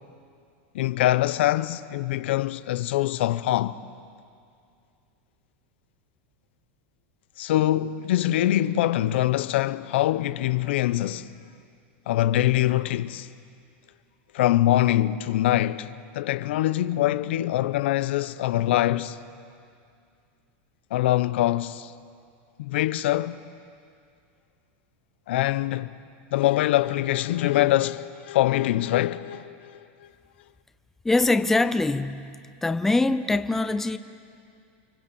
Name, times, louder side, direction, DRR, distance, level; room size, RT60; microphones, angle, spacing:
voice 1, 0.7-3.8 7.4-11.3 12.1-13.3 14.3-19.2 20.9-21.9 22.6-23.4 25.3-25.9 26.3-30.1, left 14 dB, 80° left, 0.8 m, -24 dB
voice 2, 31.0-32.4 32.6-34.0, left 2 dB, 5° left, 0.6 m, -23 dB
29.5 x 23.5 x 8.6 m
supercardioid pair, 160°, 6 cm